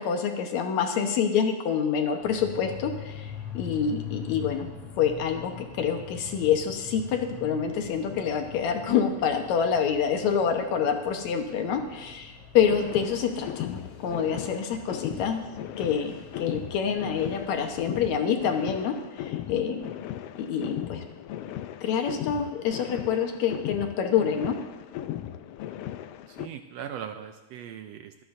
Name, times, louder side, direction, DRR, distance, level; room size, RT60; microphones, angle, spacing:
voice 1, 0.0-4.7 5.0-15.4 15.8-19.9 20.4-21.0 21.8-24.6, left 7 dB, 75° left, 4 dB, 2.4 m, -27 dB
sound 1, 2.2-18.0, left 7 dB, 50° left, 3.2 m, -43 dB
sound 2, 12.6-26.5, left 12 dB, 90° left, 1.3 m, -37 dB
voice 2, 26.3-28.2, right 9 dB, 75° right, 7 dB, 1.6 m, -39 dB
24.0 x 10.0 x 2.6 m, 1.2 s
omnidirectional pair, 3.4 m